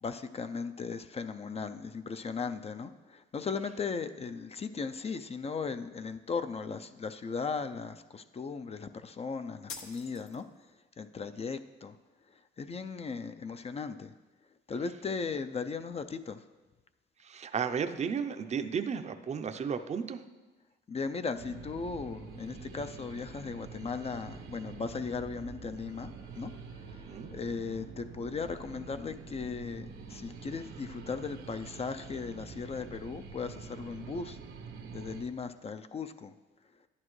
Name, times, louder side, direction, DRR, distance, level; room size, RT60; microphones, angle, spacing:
voice 1, 0.0-10.4 11.0-12.0 12.3-14.1 14.7-16.5 20.9-34.4 34.9-36.3, left 5 dB, 30° left, 9 dB, 0.4 m, -37 dB
sound 1, 9.7-10.7, left 5 dB, 85° left, 1.0 m, -45 dB
voice 2, 17.2-20.2 27.1-27.3, right 6 dB, 35° right, 9 dB, 0.5 m, -33 dB
sound 2, 21.4-35.2, right 5 dB, 90° right, 1.0 m, -46 dB
11.0 x 9.8 x 3.1 m, 1.2 s
cardioid pair, 90°, 20 cm